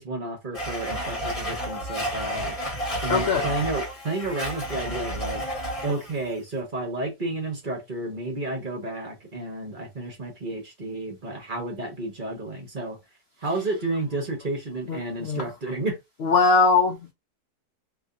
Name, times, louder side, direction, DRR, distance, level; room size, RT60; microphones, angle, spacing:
voice 1, 0.0-2.6 3.0-5.4 5.8-13.0 13.4-16.0, right 2 dB, 35° right, 1.0 m, -31 dB
Domestic sounds home sounds, 0.5-6.2, equal, 25° left, 1.2 m, -31 dB
voice 2, 3.1-3.5 14.9-15.4 16.2-17.0, left 4 dB, 65° left, 0.6 m, -21 dB
2.9 x 2.7 x 3.7 m
omnidirectional pair, 1.7 m